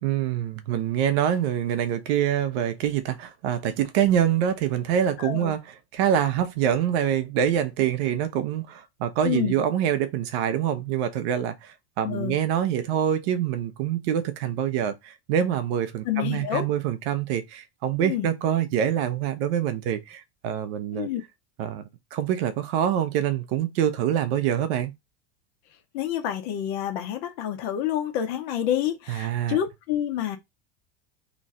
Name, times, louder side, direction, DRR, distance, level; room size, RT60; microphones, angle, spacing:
voice 1, 0.0-5.6 5.9-21.1 21.6-21.8 22.1-24.9 29.1-29.6, right 9 dB, 70° right, 0.9 m, -25 dB
voice 2, 5.2-5.5 9.2-9.6 12.0-12.4 16.0-16.7 18.0-18.3 20.9-21.2 25.9-30.4, left 11 dB, 70° left, 1.1 m, -28 dB
3.0 x 2.5 x 4.2 m
supercardioid pair, 110°, 33 cm